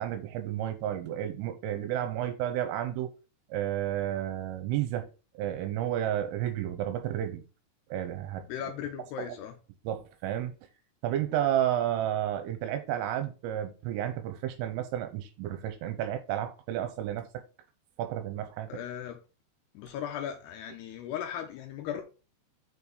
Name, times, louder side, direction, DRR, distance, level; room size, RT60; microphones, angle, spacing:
voice 1, 0.0-3.1 3.5-5.1 5.3-7.4 7.9-8.5 9.9-10.5 11.0-17.4 18.0-18.8, right 11 dB, 80° right, 3.3 m, -31 dB
voice 2, 8.5-9.6 18.7-19.2 19.7-22.0, left 9 dB, 85° left, 2.3 m, -37 dB
7.0 x 5.8 x 3.9 m
omnidirectional pair, 5.9 m